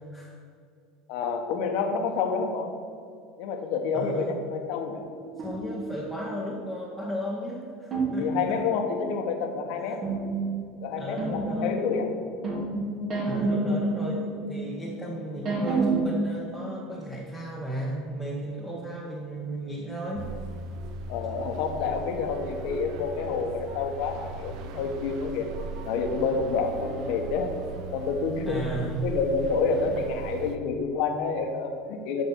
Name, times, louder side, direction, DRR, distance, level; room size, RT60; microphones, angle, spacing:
voice 1, 1.1-2.7 3.4-5.0 8.2-10.0 10.8-12.1 21.1-25.5 25.8-27.5 27.9-28.7 29.0-32.2, left 5 dB, 70° left, 4 dB, 1.4 m, -28 dB
voice 2, 3.9-4.4 5.4-8.6 9.9-10.0 11.0-11.9 13.3-20.3 28.4-29.1 29.7-30.0, right 1 dB, 5° right, -4 dB, 1.6 m, -35 dB
sound 1, 5.0-6.4 7.9-9.2 10.0-16.0, right 3 dB, 40° right, 2.7 m, -30 dB
sound 2, 20.2-30.6, right 4 dB, 60° right, 0.9 m, -38 dB
11.5 x 5.3 x 6.3 m, 2.3 s
supercardioid pair, 110°, 0 cm